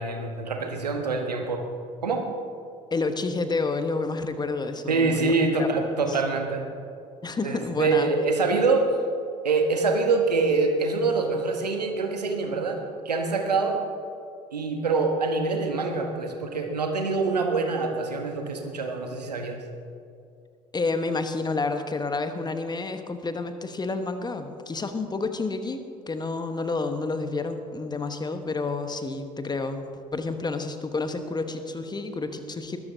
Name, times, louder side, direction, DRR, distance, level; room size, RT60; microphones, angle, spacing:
voice 1, 0.0-1.6 2.0-2.2 4.9-6.6 7.4-8.9 9.4-12.8 13.0-13.8 14.5-19.6, right 3 dB, 80° right, 4 dB, 1.3 m, -25 dB
voice 2, 2.9-5.7 6.1-6.2 7.2-8.1 20.7-25.8 26.1-29.9 30.1-32.8, left 3 dB, 20° left, 8 dB, 1.2 m, -29 dB
20.5 x 12.0 x 2.8 m, 2.5 s
figure-of-eight pair, 55°, 21 cm